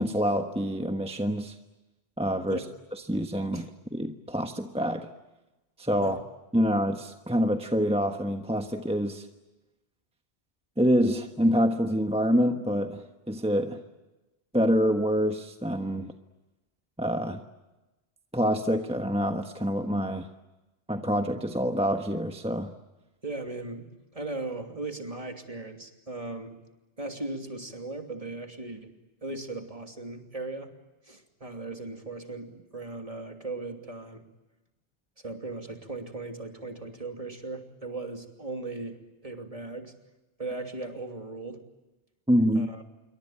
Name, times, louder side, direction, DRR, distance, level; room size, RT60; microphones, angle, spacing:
voice 1, 0.0-1.5 2.2-2.6 2.9-5.1 5.8-6.2 6.5-9.3 10.8-13.8 14.5-16.1 17.0-17.4 18.3-20.3 20.9-22.7 42.3-42.7, equal, 5° right, 5 dB, 1.2 m, -26 dB
voice 2, 23.2-26.6 27.0-28.9 29.2-30.7 31.0-34.3 35.2-39.9 40.4-41.6 42.5-42.8, right 2 dB, 35° right, 4 dB, 3.0 m, -38 dB
27.5 x 24.0 x 8.8 m, 1.1 s
omnidirectional pair, 1.1 m